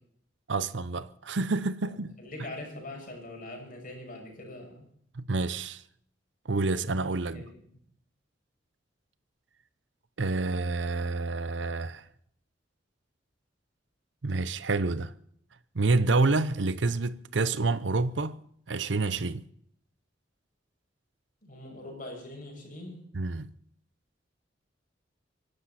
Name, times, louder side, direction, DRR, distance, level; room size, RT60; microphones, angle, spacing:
voice 1, 0.5-2.1 5.2-5.8 6.5-7.4 10.2-12.0 14.2-15.1 15.7-18.4 18.7-19.4 23.1-23.5, right 3 dB, 70° right, 0.8 m, -28 dB
voice 2, 1.8-4.9 7.2-7.8 21.4-23.0, left 1 dB, 50° left, 6.5 m, -43 dB
24.5 x 12.0 x 4.3 m
head